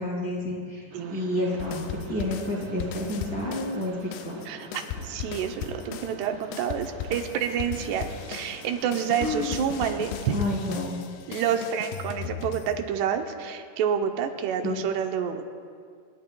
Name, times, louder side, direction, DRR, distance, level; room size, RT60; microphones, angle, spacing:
voice 1, 0.0-0.8 1.1-4.4 9.2-9.7 10.3-11.0 14.6-14.8, left 1 dB, 25° left, -5 dB, 2.5 m, -30 dB
Mechanisms, 0.9-10.9, right 3 dB, 60° right, 2.8 m, -46 dB
sound 1, 1.6-3.9 4.1-13.1, left 9 dB, 80° left, 2.4 m, -37 dB
voice 2, 4.5-10.4 11.3-15.5, right 8 dB, 85° right, 6 dB, 2.8 m, -28 dB
28.0 x 12.0 x 2.3 m, 2.2 s
omnidirectional pair, 4.7 m